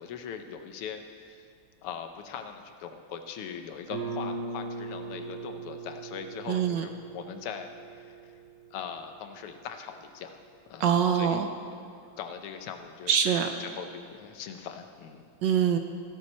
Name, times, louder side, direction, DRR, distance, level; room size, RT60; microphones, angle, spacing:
voice 1, 0.0-1.4 1.8-7.7 7.9-8.2 8.7-10.4 10.7-10.9 11.1-11.5 12.2-13.1 13.6-15.2, left 7 dB, 85° left, 7 dB, 1.8 m, -40 dB
Guitar, 3.9-9.3, right 3 dB, 45° right, 2.5 m, -40 dB
voice 2, 6.5-6.8 10.8-11.5 13.1-13.5 15.4-15.8, right 8 dB, 70° right, 7 dB, 1.1 m, -24 dB
15.0 x 12.5 x 4.3 m, 2.3 s
omnidirectional pair, 2.4 m